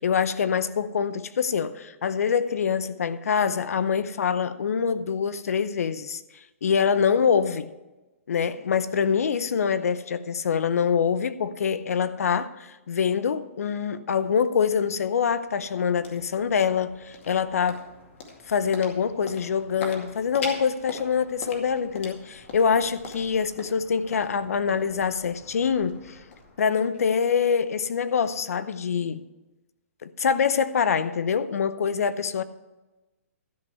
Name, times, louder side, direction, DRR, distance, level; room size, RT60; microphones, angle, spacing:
voice 1, 0.0-6.2 6.6-7.7 8.3-17.8 18.5-26.2 26.6-29.2 30.0-32.4, left 6 dB, 85° left, 0.7 m, -25 dB
sound 1, 15.4-27.5, left 3 dB, 55° left, 2.2 m, -43 dB
12.5 x 5.5 x 7.9 m
hypercardioid pair, 165°, 8 cm